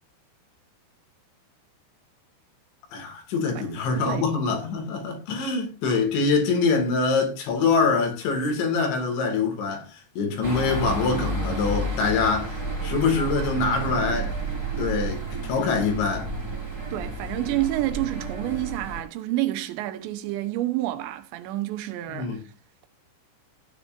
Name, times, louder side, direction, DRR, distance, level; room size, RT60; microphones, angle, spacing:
voice 1, 2.9-9.9 10.2-12.5 12.8-14.3 14.8-16.3 22.1-22.4, left 4 dB, 85° left, 4.8 m, -24 dB
voice 2, 3.9-4.3 16.9-22.4, right 16 dB, 80° right, 3.2 m, -29 dB
sound 1, 10.4-19.0, right 2 dB, 15° right, 1.1 m, -31 dB
15.0 x 9.5 x 2.6 m
omnidirectional pair, 5.1 m